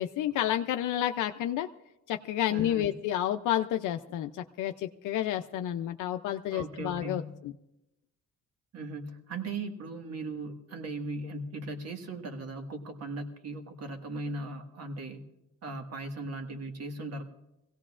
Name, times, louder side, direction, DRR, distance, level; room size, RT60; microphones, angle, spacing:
voice 1, 0.0-1.7 2.1-7.5, left 11 dB, 80° left, 6 dB, 0.5 m, -30 dB
voice 2, 2.5-2.9 6.5-7.3 8.7-15.3 15.6-17.3, right 2 dB, 55° right, 5 dB, 1.7 m, -38 dB
22.5 x 17.0 x 2.5 m, 0.93 s
cardioid pair, 90°, 30 cm